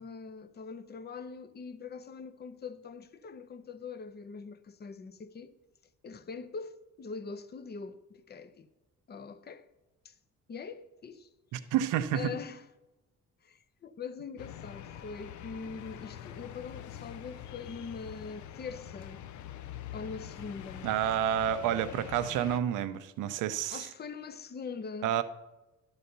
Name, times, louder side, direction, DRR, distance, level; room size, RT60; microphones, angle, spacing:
voice 1, 0.0-5.5 6.0-8.7 9.1-9.7 10.0-10.1 10.5-11.3 11.6-11.7 12.1-12.6 13.4-19.2 19.9-20.9 23.7-25.2, left 5 dB, 35° left, 0.6 m, -43 dB
voice 2, 11.5-12.3 20.8-23.9 25.0-25.2, right 10 dB, 90° right, 0.6 m, -29 dB
sound 1, 14.4-22.6, left 10 dB, 70° left, 0.6 m, -45 dB
11.5 x 4.0 x 6.7 m
cardioid pair, 90°, 30 cm